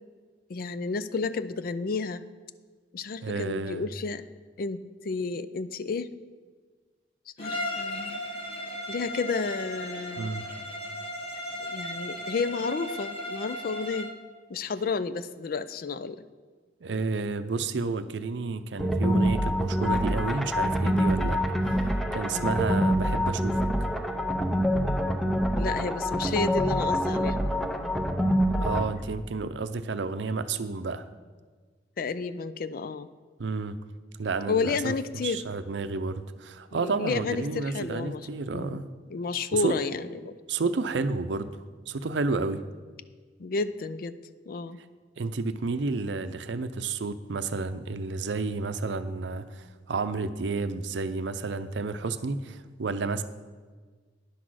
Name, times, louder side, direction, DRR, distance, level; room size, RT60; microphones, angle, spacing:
voice 1, 0.5-2.2 2.9-4.2 4.6-6.1 7.4-8.2 8.9-10.3 11.6-14.1 14.5-16.2 22.3-22.7 25.5-27.9 29.4-29.5 32.0-33.1 34.5-35.4 36.7-38.3 38.5-38.8 39.1-40.4 43.4-44.1 44.5-44.8, left 4 dB, 55° left, 14 dB, 0.4 m, -31 dB
voice 2, 3.2-3.8 10.2-10.4 16.8-21.4 21.7-21.8 22.1-23.6 28.6-31.1 33.4-33.8 34.2-38.8 39.6-39.7 40.5-42.6 45.2-53.2, right 3 dB, 80° right, 11 dB, 0.5 m, -31 dB
Bowed string instrument, 7.4-14.2, left 1 dB, 30° left, 1.2 m, -36 dB
sound 1, 18.8-28.9, equal, ahead, 0.6 m, -26 dB
10.0 x 6.1 x 6.3 m, 1.5 s
head